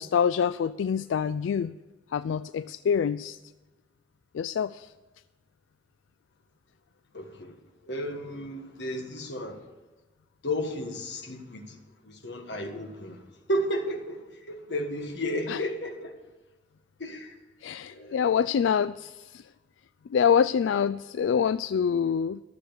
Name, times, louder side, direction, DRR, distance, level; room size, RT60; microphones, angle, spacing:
voice 1, 0.0-1.7 2.1-3.4 4.3-4.9 15.5-15.6 17.6-19.4 20.1-22.4, left 7 dB, 90° left, 0.3 m, -26 dB
voice 2, 7.1-7.5 7.8-9.6 10.4-11.8 12.1-13.2 13.5-14.2 14.5-16.1 17.0-17.4 17.8-18.3, equal, 70° left, 1.6 m, -33 dB
13.5 x 7.0 x 8.1 m
head